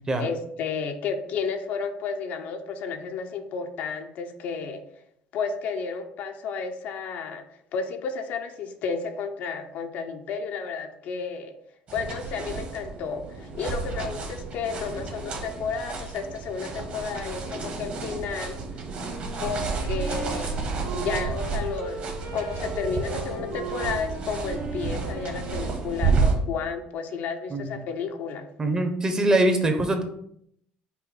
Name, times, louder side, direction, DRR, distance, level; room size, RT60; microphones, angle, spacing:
voice 1, 0.2-4.8 5.3-7.4 7.7-11.5 11.9-18.6 19.4-20.6 20.9-22.0 22.3-28.5, left 5 dB, 60° left, 6 dB, 0.6 m, -32 dB
sound 1, 11.9-26.3, right 4 dB, 45° right, 1.2 m, -31 dB
Wind instrument woodwind instrument, 19.0-26.7, right 4 dB, 75° right, 1.1 m, -38 dB
voice 2, 28.6-30.0, right 1 dB, 25° right, 6 dB, 0.7 m, -23 dB
5.5 x 2.3 x 4.2 m, 0.71 s
cardioid pair, 115°, 3 cm